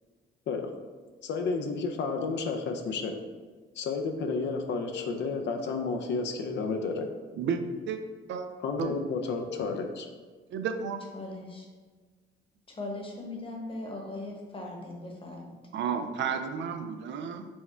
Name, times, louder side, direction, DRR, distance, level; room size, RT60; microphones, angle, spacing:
voice 1, 1.2-3.1 3.8-7.1 8.6-10.1, left 4 dB, 65° left, 4 dB, 0.5 m, -31 dB
voice 2, 10.5-11.0 15.7-17.5, right 7 dB, 70° right, 7 dB, 0.4 m, -32 dB
voice 3, 11.1-11.6 12.7-15.5, left 2 dB, 25° left, 0 dB, 1.0 m, -39 dB
4.5 x 2.2 x 4.3 m, 1.4 s
cardioid pair, 90°, 20 cm